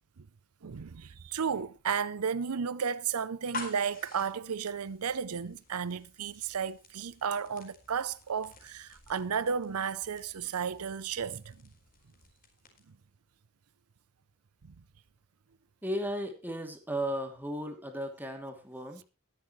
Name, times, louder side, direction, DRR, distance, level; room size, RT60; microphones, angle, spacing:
voice 1, 0.6-11.6, right 6 dB, 85° right, 0.6 m, -33 dB
sound 1, 3.3-13.0, left 3 dB, 40° left, 4.6 m, -49 dB
voice 2, 15.8-19.0, equal, 10° right, 2.7 m, -35 dB
22.0 x 7.9 x 3.2 m
head